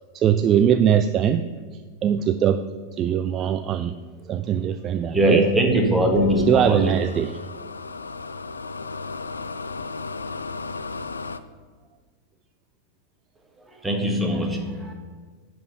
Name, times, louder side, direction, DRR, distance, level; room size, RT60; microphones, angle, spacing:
voice 1, 0.1-1.4 2.0-2.6 3.0-3.9 4.3-5.4 6.5-7.3, right 9 dB, 30° right, 10 dB, 0.3 m, -21 dB
voice 2, 5.1-6.9 13.6-14.9, equal, 10° right, 1 dB, 1.5 m, -21 dB
sound 1, 6.3-11.4, left 4 dB, 75° left, 0.4 m, -35 dB
10.5 x 4.4 x 5.7 m, 1.5 s
figure-of-eight pair, 90°, 0 cm